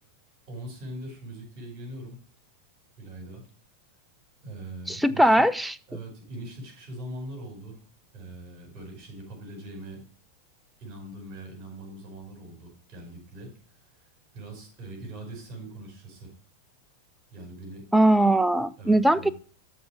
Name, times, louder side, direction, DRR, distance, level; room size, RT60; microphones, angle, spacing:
voice 1, 0.5-2.2 3.0-3.5 4.4-5.5 5.9-7.8 8.1-10.1 10.8-13.5 14.3-16.4 17.3-17.9 18.8-19.3, right 1 dB, 35° right, 5.2 m, -41 dB
voice 2, 4.9-5.7 17.9-19.3, right 1 dB, 5° right, 0.4 m, -20 dB
13.0 x 4.5 x 5.0 m
figure-of-eight pair, 90°, 0 cm